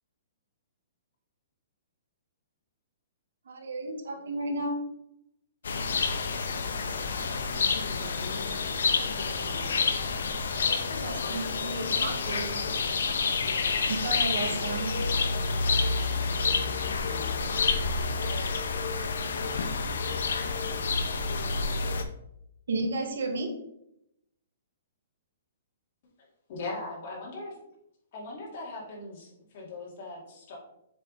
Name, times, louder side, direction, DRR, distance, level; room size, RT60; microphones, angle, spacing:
voice 1, 3.5-4.8 10.8-12.6 13.9-15.0 22.7-23.5, right 2 dB, 90° right, 3 dB, 1.5 m, -33 dB
sound 1, 5.6-22.0, left 4 dB, 85° left, 0.7 m, -29 dB
voice 2, 7.1-9.9 16.2-18.0, left 2 dB, 65° left, 3 dB, 1.5 m, -46 dB
voice 3, 26.5-27.5 28.1-30.6, left 2 dB, 45° left, -3 dB, 2.3 m, -39 dB
7.4 x 3.5 x 4.0 m, 0.79 s
hypercardioid pair, 170°, 0 cm